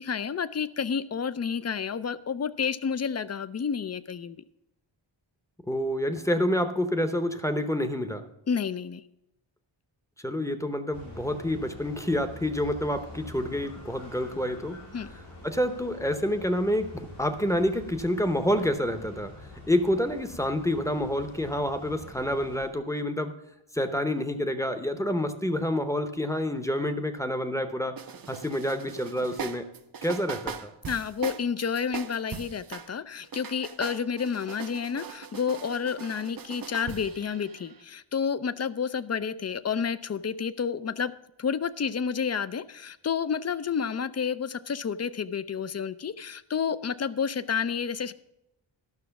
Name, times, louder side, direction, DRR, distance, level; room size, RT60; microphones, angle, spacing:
voice 1, 0.0-4.4 8.5-9.0 14.9-15.1 30.9-41.1 41.4-48.1, left 6 dB, 35° left, 16 dB, 0.4 m, -30 dB
voice 2, 5.7-8.2 10.2-14.8 15.4-19.3 19.7-23.3 23.7-27.9 28.3-29.6 30.0-30.7, left 1 dB, 5° left, 9 dB, 0.7 m, -28 dB
sound 1, 10.9-22.7, left 1 dB, 90° left, 3.8 m, -46 dB
sound 2, 28.0-32.9 33.2-37.8, right 6 dB, 50° right, 0.6 m, -40 dB
12.0 x 6.0 x 5.8 m, 0.86 s
wide cardioid pair, 100°, 47 cm